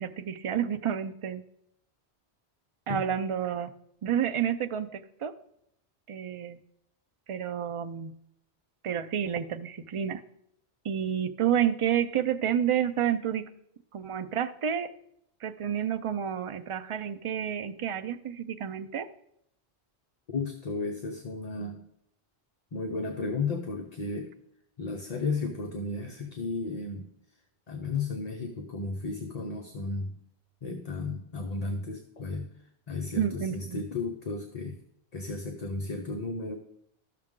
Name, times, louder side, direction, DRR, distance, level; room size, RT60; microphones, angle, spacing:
voice 1, 0.0-1.4 2.9-3.7 4.0-5.3 6.1-6.6 7.3-8.1 8.8-10.2 10.8-13.5 13.9-14.9 15.4-19.1 33.2-33.8, right 9 dB, 60° right, 10 dB, 0.3 m, -30 dB
voice 2, 20.3-21.8 22.7-24.3 24.8-27.1 27.7-30.1 30.6-32.5 32.9-34.8 35.1-36.6, left 3 dB, 40° left, 4 dB, 0.8 m, -34 dB
13.0 x 6.6 x 3.7 m, 0.74 s
omnidirectional pair, 1.1 m